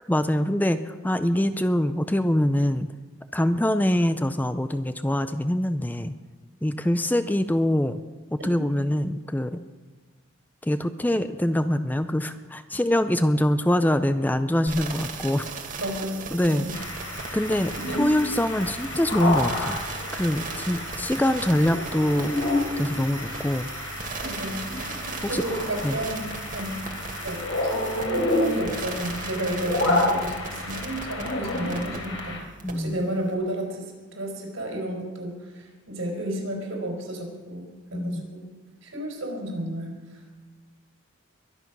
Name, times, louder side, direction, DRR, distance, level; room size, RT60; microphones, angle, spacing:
voice 1, 0.1-2.9 3.3-6.1 6.6-8.0 8.4-9.6 10.6-15.5 16.3-16.7 17.3-19.8 20.1-22.3 22.8-23.7 25.2-25.4 25.8-26.0 32.6-33.0 37.9-38.2, left 1 dB, 10° left, 11 dB, 0.4 m, -24 dB
sound 1, 14.7-32.2 32.6-32.7, right 5 dB, 40° right, 1.6 m, -38 dB
voice 2, 15.8-16.7 17.7-18.0 24.2-24.6 25.3-26.8 27.2-32.4 32.7-37.6 37.9-38.5 38.8-40.2, right 1 dB, 80° right, 1 dB, 4.6 m, -32 dB
sound 2, 16.7-32.4, left 2 dB, 75° left, 3.8 m, -30 dB
23.0 x 9.3 x 6.1 m, 1.3 s
head